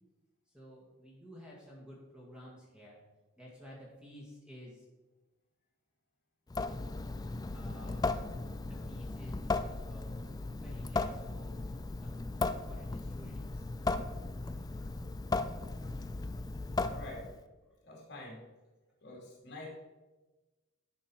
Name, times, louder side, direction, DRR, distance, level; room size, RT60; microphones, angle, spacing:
voice 1, 0.5-3.0 3.4-4.9 7.5-8.0 8.6-9.6 9.9-11.6 12.0-12.4 12.7-13.7, equal, 5° right, -5 dB, 1.8 m, -52 dB
Water tap faucet / Sink (filling or washing) / Drip, 6.5-17.4, left 3 dB, 20° left, 0.3 m, -36 dB
voice 2, 16.9-17.3 17.8-18.4 19.0-19.7, left 1 dB, 50° left, -2 dB, 2.7 m, -46 dB
11.0 x 5.4 x 4.4 m, 1.1 s
head